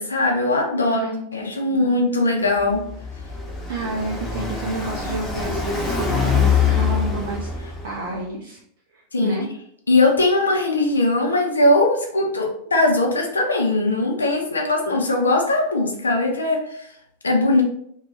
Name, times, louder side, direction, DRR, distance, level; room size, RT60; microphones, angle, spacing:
voice 1, 0.0-1.0 1.3-2.8 9.1-9.4 9.9-16.9 17.2-17.6, left 2 dB, 75° left, 1 dB, 0.5 m, -20 dB
voice 2, 0.8-1.9 3.7-7.5 7.8-8.6 8.9-9.5, right 3 dB, 55° right, -2 dB, 0.4 m, -30 dB
Car passing by, 2.6-8.1, left 6 dB, 15° left, 0.7 m, -24 dB
2.2 x 2.1 x 3.2 m, 0.69 s
figure-of-eight pair, 90°, 0 cm